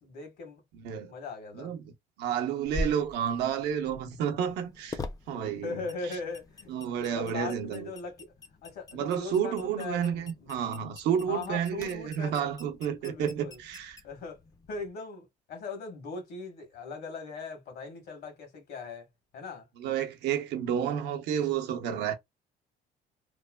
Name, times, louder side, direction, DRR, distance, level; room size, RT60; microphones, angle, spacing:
voice 1, 0.0-0.6 1.1-1.7 5.6-6.7 7.1-8.3 8.6-10.3 11.2-12.4 12.7-13.6 14.0-14.4 14.7-19.1 19.3-19.7, left 4 dB, 70° left, 1.4 m, -40 dB
voice 2, 0.8-1.1 1.5-5.0 5.3-5.8 6.7-7.9 8.9-14.0 19.8-22.2, right 8 dB, 80° right, 0.7 m, -30 dB
sound 1, 2.7-14.9, left 2 dB, 20° left, 0.4 m, -44 dB
3.0 x 2.2 x 2.2 m
cardioid pair, 110°, 17 cm